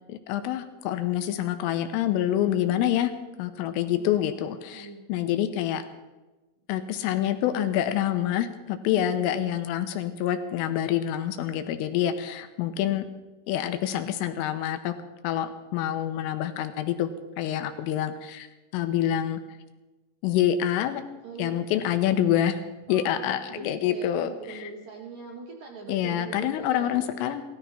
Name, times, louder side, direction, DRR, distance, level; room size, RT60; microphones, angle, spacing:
voice 1, 0.1-3.1 3.4-5.8 6.7-13.1 13.5-15.0 15.2-17.1 17.4-18.5 18.7-19.4 20.2-21.0 21.4-22.6 22.9-24.7 25.9-27.4, left 11 dB, 85° left, 9 dB, 3.5 m, -27 dB
voice 2, 3.9-5.0 8.9-9.6 12.9-13.0 21.2-21.6 22.0-22.1 22.9-27.3, right 4 dB, 65° right, 0 dB, 2.2 m, -42 dB
16.5 x 13.5 x 5.8 m, 1.1 s
omnidirectional pair, 5.9 m